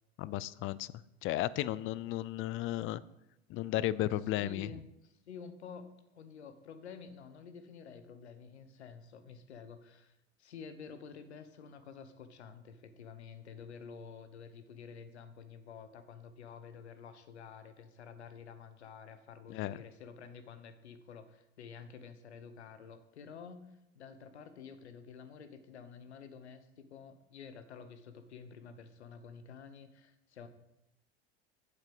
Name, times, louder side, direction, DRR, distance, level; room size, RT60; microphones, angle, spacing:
voice 1, 0.2-0.9 1.2-3.0 3.5-4.7 19.5-19.8, left 14 dB, 40° left, 19 dB, 0.4 m, -34 dB
voice 2, 4.3-23.7 23.9-30.5, left 6 dB, 85° left, 10 dB, 1.0 m, -50 dB
8.2 x 7.3 x 5.3 m, 0.90 s
hypercardioid pair, 80°, 32 cm